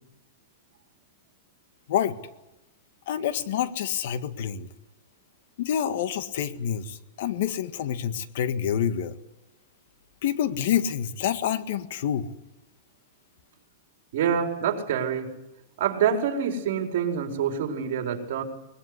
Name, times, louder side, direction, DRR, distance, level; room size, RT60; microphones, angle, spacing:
voice 1, 3.1-4.7 5.6-9.1 10.2-12.3, left 9 dB, 60° left, 11 dB, 1.8 m, -27 dB
voice 2, 14.1-15.3 15.8-18.4, right 8 dB, 60° right, 3 dB, 4.8 m, -26 dB
22.0 x 21.0 x 10.0 m, 0.91 s
supercardioid pair, 160°, 0 cm